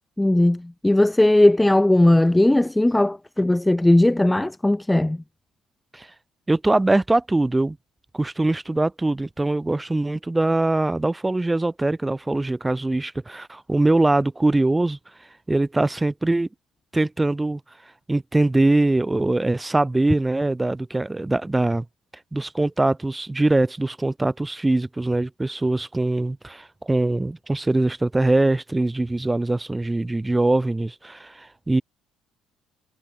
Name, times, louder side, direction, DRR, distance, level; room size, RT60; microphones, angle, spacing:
voice 1, 0.2-5.2, left 1 dB, 10° left, 0.9 m, -18 dB
voice 2, 6.5-7.8 8.1-15.0 15.5-16.5 16.9-17.6 18.1-21.8 22.3-31.8, right 2 dB, 10° right, 1.6 m, -22 dB
cardioid pair, 105°, 0 cm